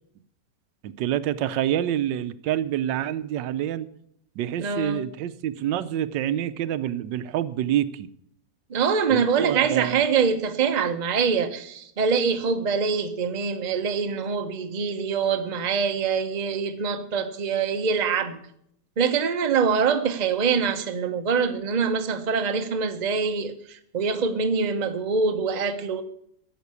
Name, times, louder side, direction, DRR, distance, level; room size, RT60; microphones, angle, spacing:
voice 1, 0.8-3.9 4.4-8.1 9.1-10.0, right 11 dB, 85° right, 14 dB, 1.3 m, -27 dB
voice 2, 4.6-5.0 8.7-18.4 19.0-26.0, right 5 dB, 35° right, 7 dB, 0.7 m, -24 dB
11.5 x 7.5 x 8.3 m, 0.71 s
omnidirectional pair, 1.9 m